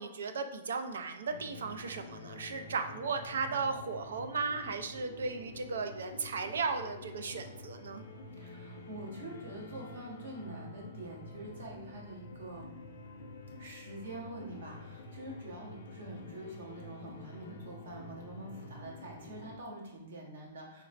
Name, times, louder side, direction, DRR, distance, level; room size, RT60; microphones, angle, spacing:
voice 1, 0.0-8.0, right 4 dB, 90° right, 8 dB, 0.4 m, -36 dB
sound 1, 1.3-19.6, left 2 dB, 65° left, 0.5 m, -48 dB
voice 2, 8.4-12.7 13.6-20.8, right 1 dB, 75° right, -2 dB, 1.1 m, -45 dB
4.2 x 3.0 x 2.5 m, 0.84 s
hypercardioid pair, 165°, 0 cm